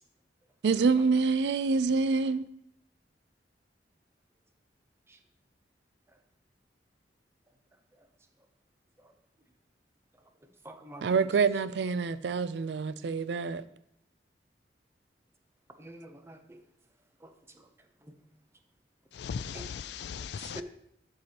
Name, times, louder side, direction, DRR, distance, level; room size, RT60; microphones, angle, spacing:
voice 1, 0.6-2.4 11.0-13.6, right 4 dB, 70° right, 0.4 m, -26 dB
voice 2, 10.6-11.3 15.8-16.6 17.2-17.7 18.0-18.1 19.5-19.7 20.4-20.6, right 1 dB, 15° right, 0.7 m, -47 dB
voice 3, 19.1-20.6, left 6 dB, 65° left, 0.3 m, -38 dB
11.5 x 4.9 x 2.9 m
head